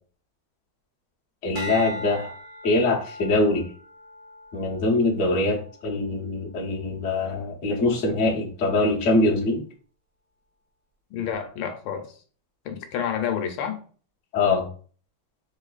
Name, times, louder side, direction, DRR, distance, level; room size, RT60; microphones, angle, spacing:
voice 1, 1.4-2.3 2.6-3.7 4.5-9.6 14.3-14.7, left 2 dB, 60° left, -2 dB, 0.7 m, -23 dB
sound 1, 1.5-6.0 6.6-7.0, equal, 70° right, 1.7 m, -39 dB
voice 2, 11.1-12.2 12.6-13.8, left 8 dB, 80° left, 5 dB, 1.4 m, -29 dB
3.7 x 3.0 x 2.3 m, 0.41 s
omnidirectional pair, 2.4 m